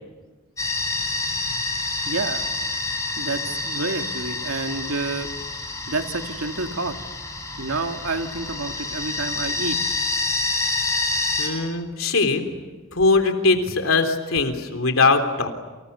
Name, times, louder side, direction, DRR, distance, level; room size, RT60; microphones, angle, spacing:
sound 1, 0.6-11.5, left 3 dB, 15° left, 5.8 m, -28 dB
voice 1, 2.1-2.5 3.2-5.3 5.9-6.9 7.6-9.8, right 3 dB, 90° right, 6 dB, 2.2 m, -29 dB
voice 2, 11.4-12.5 12.9-15.5, left 3 dB, 70° left, 6 dB, 3.6 m, -20 dB
30.0 x 27.5 x 6.9 m, 1.2 s
head